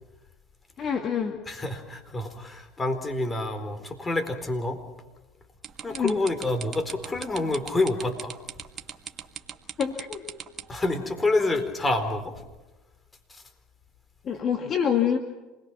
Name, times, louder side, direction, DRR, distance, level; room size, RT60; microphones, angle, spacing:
voice 1, 0.8-1.4 5.9-6.2 9.8-10.2 14.2-15.2, left 8 dB, 45° left, 4 dB, 2.2 m, -26 dB
voice 2, 1.5-4.8 5.8-8.3 10.7-12.3, left 2 dB, 20° left, 7 dB, 4.3 m, -27 dB
sound 1, 5.6-10.8, right 7 dB, 40° right, 1.8 m, -39 dB
27.5 x 21.0 x 6.1 m, 1.1 s
hypercardioid pair, 85°, 0 cm